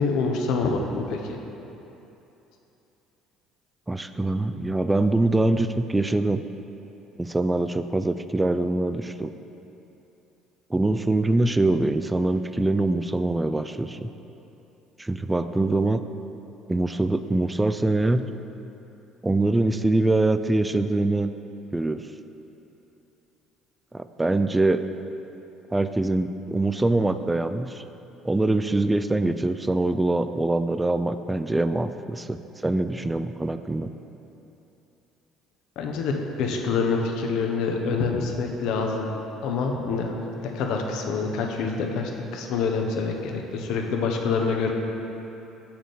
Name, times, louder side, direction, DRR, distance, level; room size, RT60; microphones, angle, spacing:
voice 1, 0.0-1.4 35.8-39.1 39.4-44.7, left 4 dB, 65° left, 2 dB, 0.8 m, -26 dB
voice 2, 3.9-6.4 7.2-9.3 10.7-14.1 15.0-16.0 16.7-18.3 19.2-21.3 21.7-22.1 23.9-24.8 25.7-27.8 28.2-33.9, right 2 dB, 15° right, 10 dB, 0.3 m, -24 dB
7.2 x 3.7 x 6.4 m, 3.0 s
hypercardioid pair, 60°, 0 cm